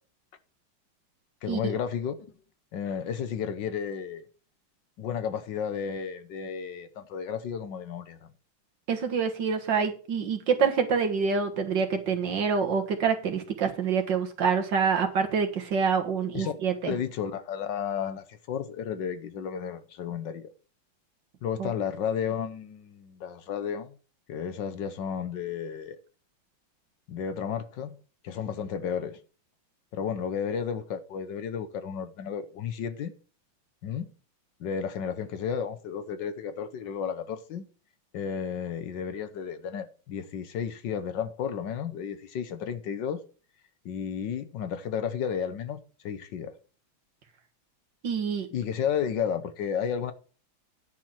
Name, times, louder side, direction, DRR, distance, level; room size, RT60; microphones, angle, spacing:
voice 1, 1.4-2.2 2.7-4.2 5.0-8.3 16.3-20.5 21.4-23.9 24.3-26.0 27.1-28.0 28.2-29.2 29.9-33.1 33.8-34.1 34.6-37.7 38.1-43.2 43.8-46.5 48.5-50.1, left 7 dB, 70° left, 1.5 m, -32 dB
voice 2, 8.9-16.9 21.6-21.7 48.0-48.5, right 6 dB, 65° right, 2.1 m, -26 dB
10.5 x 4.6 x 7.3 m
omnidirectional pair, 2.2 m